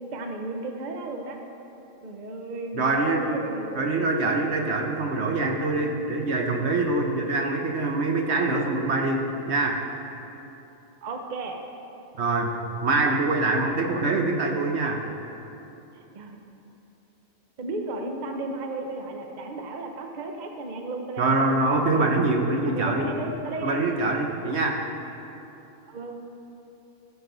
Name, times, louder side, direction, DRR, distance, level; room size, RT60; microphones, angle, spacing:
voice 1, 0.0-1.4 2.0-3.9 11.0-11.6 16.1-16.4 17.6-22.2 22.6-23.8 24.5-24.7 25.9-26.2, right 2 dB, 40° right, 3 dB, 0.7 m, -34 dB
voice 2, 2.8-3.2 3.8-9.8 12.2-12.5 12.8-15.0 21.2-23.1 23.6-24.8, right 2 dB, 60° right, 2 dB, 1.0 m, -24 dB
15.5 x 7.0 x 3.9 m, 3.0 s
omnidirectional pair, 1.4 m